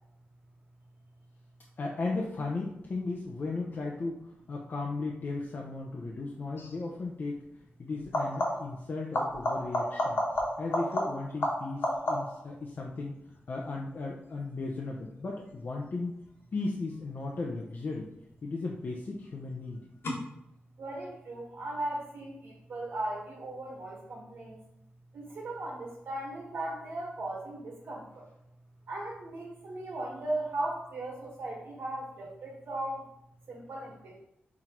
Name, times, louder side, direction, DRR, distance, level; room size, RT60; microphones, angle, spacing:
voice 1, 1.8-4.2 4.5-7.4 7.8-10.2 10.6-13.1 13.5-16.1 16.5-18.1 18.4-19.8, left 3 dB, 50° left, -2 dB, 0.8 m, -36 dB
sound 1, 6.6-6.8 8.0-8.8 9.1-12.5 17.9-18.5 20.0-20.1, left 1 dB, 75° left, 1.6 m, -31 dB
voice 2, 20.8-24.6 25.1-28.3 28.9-33.1 33.5-34.2, right 1 dB, 70° right, -2 dB, 1.5 m, -37 dB
6.0 x 3.8 x 4.4 m, 0.80 s
wide cardioid pair, 120°, 4 cm